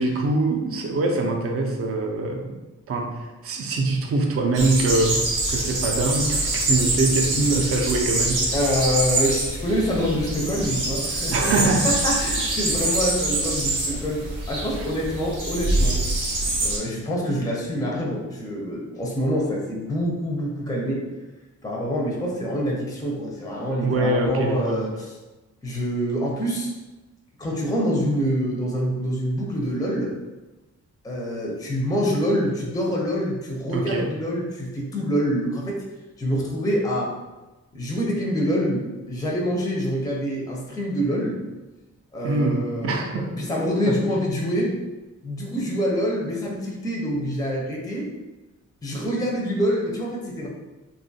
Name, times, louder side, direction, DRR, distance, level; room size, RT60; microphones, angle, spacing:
voice 1, 0.0-2.6 2.9-8.5 11.3-11.9 14.8-14.9 23.8-24.8 33.7-34.1 42.2-43.3 43.8-44.0, right 2 dB, 50° right, 2 dB, 0.5 m, -24 dB
sound 1, 4.5-16.8, right 2 dB, 85° right, 0.8 m, -25 dB
voice 2, 8.5-11.5 11.8-16.0 16.6-21.0 21.6-25.1 25.6-26.7 27.4-30.1 31.0-35.8 36.2-37.1 37.7-41.4 42.1-44.7 45.2-48.1 48.8-50.5, equal, 10° left, -2 dB, 0.5 m, -26 dB
2.5 x 2.3 x 2.6 m, 1.1 s
wide cardioid pair, 105°, 31 cm